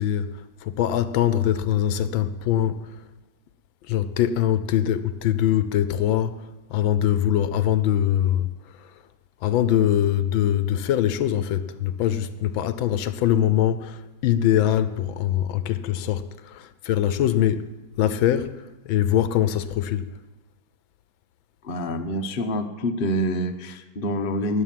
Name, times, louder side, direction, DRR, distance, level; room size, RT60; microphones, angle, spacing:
voice 1, 0.0-3.0 3.9-8.5 8.8-8.9 9.4-20.0, left 11 dB, 80° left, 1.5 m, -23 dB
voice 2, 21.6-24.6, equal, 35° left, 0.9 m, -26 dB
20.0 x 7.1 x 7.5 m
omnidirectional pair, 2.2 m